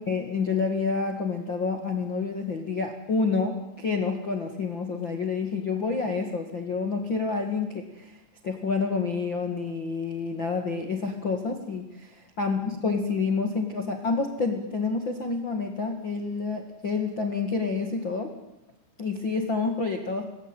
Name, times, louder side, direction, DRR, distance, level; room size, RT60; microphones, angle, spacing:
voice 1, 0.0-8.2 8.4-18.3 19.0-20.2, left 4 dB, 55° left, 4 dB, 1.3 m, -28 dB
26.5 x 20.5 x 9.1 m, 0.93 s
omnidirectional pair, 5.6 m